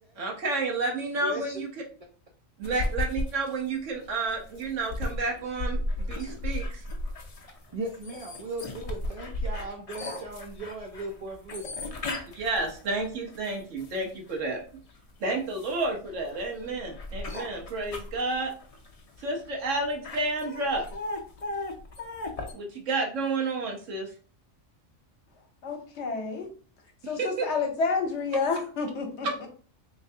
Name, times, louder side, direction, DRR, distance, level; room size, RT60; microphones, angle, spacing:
voice 1, 0.2-1.7 2.6-6.8 12.3-14.6 15.2-18.5 19.2-20.9 22.5-24.1 27.0-27.5 29.2-29.5, right 3 dB, 85° right, 1 dB, 1.3 m, -30 dB
voice 2, 1.2-1.6 2.0-2.1 7.7-11.8, right 2 dB, 60° right, 1 dB, 0.3 m, -38 dB
sound 1, 2.6-14.4 14.9-22.5, left 2 dB, 45° left, 0.5 m, -35 dB
voice 3, 25.6-26.5 27.1-29.3, left 4 dB, 70° left, 4 dB, 1.0 m, -29 dB
3.3 x 3.1 x 2.7 m, 0.41 s
omnidirectional pair, 1.2 m